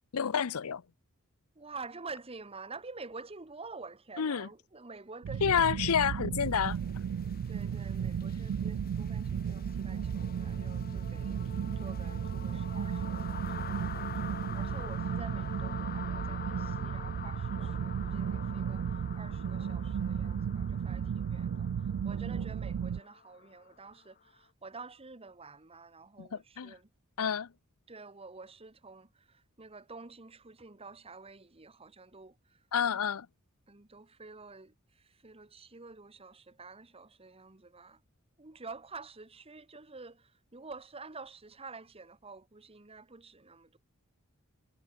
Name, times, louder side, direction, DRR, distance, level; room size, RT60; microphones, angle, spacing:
voice 1, 0.1-0.8 4.2-4.5 5.4-6.8 26.2-26.7 27.2-27.5 32.7-33.3, left 7 dB, 80° left, 0.6 m, -29 dB
voice 2, 1.5-5.7 7.5-11.4 11.7-26.9 27.9-32.6 33.7-38.0 38.4-43.8, right 4 dB, 25° right, 1.4 m, -49 dB
sound 1, 5.2-23.0, right 7 dB, 85° right, 0.3 m, -34 dB
sound 2, 6.5-24.3, left 6 dB, 45° left, 2.1 m, -46 dB
head